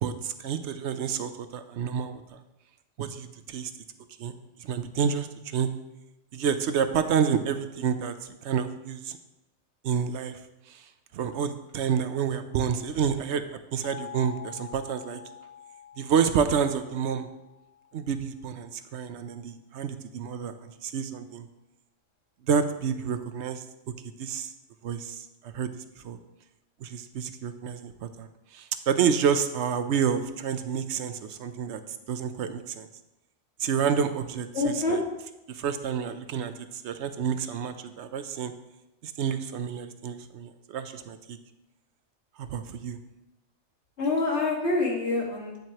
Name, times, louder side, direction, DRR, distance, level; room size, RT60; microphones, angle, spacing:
voice 1, 0.0-2.4 3.0-3.7 4.2-4.3 4.6-5.7 6.3-8.1 8.4-9.2 9.8-10.4 10.7-10.8 11.1-15.2 16.0-17.3 17.9-20.5 20.8-21.5 22.5-23.6 24.2-24.5 24.8-25.7 26.0-26.2 26.8-28.3 28.5-31.8 32.1-32.9 33.6-34.5 34.9-35.0 35.5-36.5 36.8-38.5 39.0-41.4 42.4-43.0, right 7 dB, 75° right, 9 dB, 0.9 m, -29 dB
sound 1, 13.8-18.5, left 10 dB, 85° left, 1.4 m, -47 dB
voice 2, 34.5-35.0 44.0-45.6, left 3 dB, 70° left, -2 dB, 2.0 m, -26 dB
9.1 x 7.5 x 2.9 m, 0.93 s
omnidirectional pair, 1.2 m